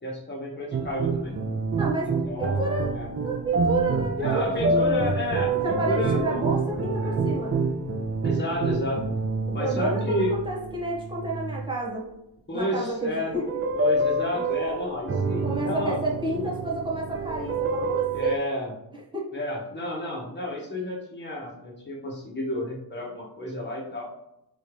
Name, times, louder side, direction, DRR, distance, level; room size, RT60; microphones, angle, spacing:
voice 1, 0.0-1.3 2.2-2.7 2.9-3.1 4.2-7.2 8.2-9.0 9.5-10.3 12.5-13.3 13.7-16.7 18.1-18.7 19.3-24.1, left 1 dB, 25° left, -3 dB, 1.5 m, -31 dB
sound 1, 0.7-11.7 13.3-18.4, right 3 dB, 30° right, 0.4 m, -27 dB
voice 2, 1.8-2.1 2.4-3.0 3.2-5.1 5.6-7.6 9.6-12.0 12.5-13.4 14.3-14.4 15.4-18.4 19.1-19.3, right 2 dB, 10° right, -5 dB, 1.3 m, -30 dB
4.2 x 3.4 x 3.2 m, 0.85 s
wide cardioid pair, 115°, 44 cm